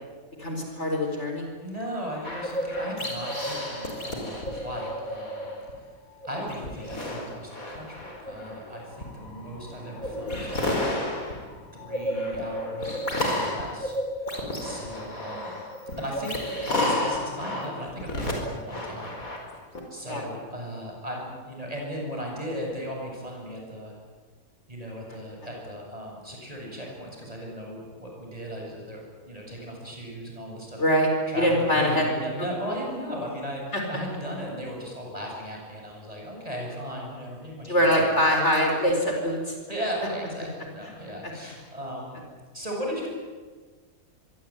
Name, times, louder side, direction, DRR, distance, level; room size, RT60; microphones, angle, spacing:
voice 1, 0.4-1.5 20.1-20.2 30.8-31.1 31.4-32.0 33.7-33.8 37.7-39.5 41.2-41.3, equal, 50° left, 2 dB, 4.9 m, -23 dB
voice 2, 1.6-5.5 6.2-11.1 11.7-13.0 13.3-13.9 14.2-15.5 16.0-16.3 16.7-19.2 19.9-23.9 24.7-31.0 31.3-38.1 39.7-42.2 42.5-43.1, equal, 25° right, -1 dB, 8.2 m, -36 dB
sound 1, 2.2-5.7 6.1-19.8, left 1 dB, 65° left, 5.4 m, -31 dB
25.0 x 23.0 x 9.2 m, 1.4 s
omnidirectional pair, 1.6 m